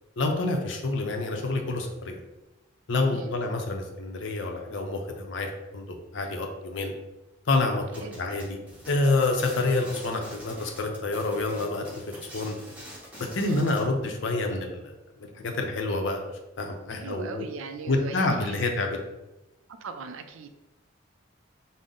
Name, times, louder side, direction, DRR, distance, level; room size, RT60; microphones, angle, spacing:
voice 1, 0.2-2.2 2.9-5.5 5.7-6.9 7.5-8.6 8.9-12.5 13.2-14.9 15.4-16.2 16.6-17.4 17.9-18.9, left 2 dB, 65° left, 3 dB, 0.5 m, -28 dB
sound 1, 7.9-13.9, equal, 5° right, 0.8 m, -45 dB
voice 2, 8.0-8.4 13.4-13.8 17.0-18.6 19.8-20.5, right 4 dB, 75° right, 8 dB, 0.4 m, -39 dB
5.4 x 2.0 x 3.7 m, 0.99 s
head